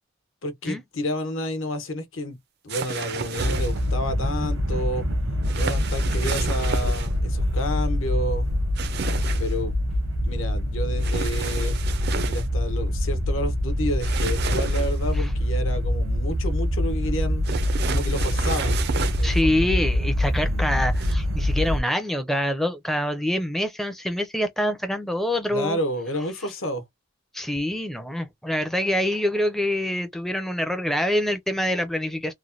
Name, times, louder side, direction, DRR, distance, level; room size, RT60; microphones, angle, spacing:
voice 1, 0.4-2.4 2.6-5.0 5.5-8.5 9.4-9.8 10.2-11.8 12.2-17.4 17.9-18.8 19.2-19.7 25.5-26.8, left 1 dB, 70° left, 1.0 m, -30 dB
sound 1, 2.7-3.9 5.4-7.1 8.8-9.6 11.0-12.5 14.0-15.1 17.4-19.4 20.9-21.1, right 6 dB, 50° right, 0.5 m, -32 dB
sound 2, 3.4-21.8, left 1 dB, 70° right, 0.8 m, -25 dB
voice 2, 19.2-25.8 27.3-32.3, left 1 dB, ahead, 0.5 m, -25 dB
3.1 x 2.1 x 2.5 m
head